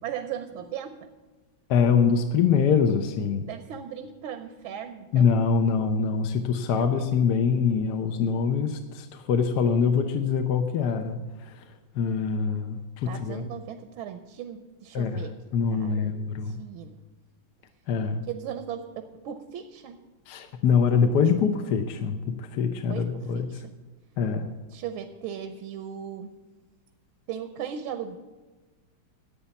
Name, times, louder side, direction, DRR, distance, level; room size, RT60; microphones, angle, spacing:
voice 1, 0.0-1.1 3.4-5.3 6.7-6.9 13.1-15.4 15.7-17.0 18.3-20.0 22.9-23.7 24.7-26.3 27.3-28.2, right 9 dB, 80° right, 8 dB, 1.6 m, -37 dB
voice 2, 1.7-3.5 5.1-11.2 12.0-13.4 14.9-15.2 15.5-16.6 17.9-18.2 20.3-23.5 24.2-24.5, left 6 dB, 60° left, 7 dB, 1.2 m, -24 dB
11.0 x 8.6 x 7.1 m, 1.2 s
omnidirectional pair, 2.3 m